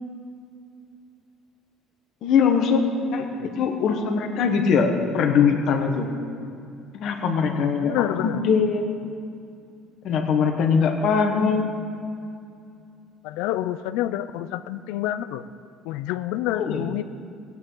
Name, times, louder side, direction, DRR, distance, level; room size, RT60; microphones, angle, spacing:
voice 1, 2.2-2.8 3.1-3.2 3.6-6.1 6.9-8.8 10.0-11.7 16.5-16.8, left 6 dB, 45° left, 4 dB, 1.2 m, -21 dB
voice 2, 7.8-8.4 11.3-11.6 13.2-15.4 15.8-17.1, left 13 dB, 85° left, 14 dB, 0.5 m, -28 dB
19.0 x 9.0 x 3.8 m, 2.5 s
cardioid pair, 175°, 0 cm